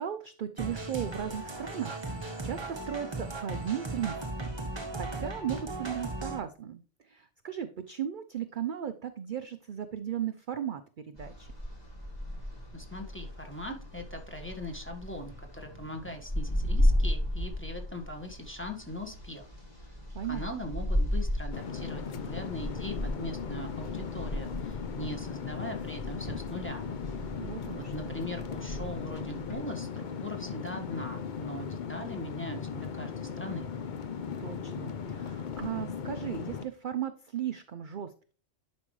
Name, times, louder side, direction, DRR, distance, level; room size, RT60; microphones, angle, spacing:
voice 1, 0.0-4.5 4.9-6.8 7.1-10.8 11.1-11.5 20.1-20.5 27.4-28.1 34.4-38.3, right 9 dB, 55° right, 10 dB, 0.6 m, -36 dB
sound 1, 0.6-6.4, right 2 dB, 25° right, 1.0 m, -37 dB
sound 2, 11.2-29.5, left 1 dB, 35° left, 2.6 m, -34 dB
voice 2, 12.7-19.5 20.2-26.9 27.7-33.7, left 1 dB, 10° left, 3 dB, 1.3 m, -40 dB
sound 3, 21.5-36.6, left 6 dB, 50° left, 0.7 m, -38 dB
11.0 x 5.2 x 3.2 m, 0.38 s
omnidirectional pair, 1.3 m